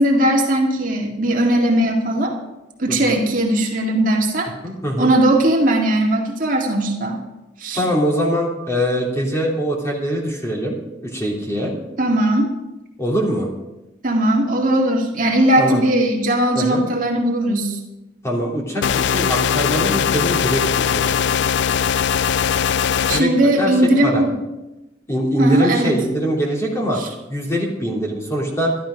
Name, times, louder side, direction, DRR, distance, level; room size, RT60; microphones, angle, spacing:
voice 1, 0.0-2.4 2.8-4.5 5.0-7.2 7.6-7.8 12.0-12.5 14.0-17.8 23.1-24.3 25.4-25.9 27.0-27.1, right 1 dB, 45° right, -1 dB, 2.1 m, -18 dB
voice 2, 4.6-5.1 7.8-10.8 11.0-11.7 13.0-13.5 15.6-15.8 16.5-16.8 18.2-21.2 23.1-23.3 23.6-23.7 24.0-24.2 25.1-27.0 27.3-28.7, equal, 15° left, -3 dB, 2.9 m, -22 dB
sound 1, 18.8-23.2, left 7 dB, 80° left, 0.4 m, -20 dB
13.0 x 12.5 x 5.2 m, 0.98 s
head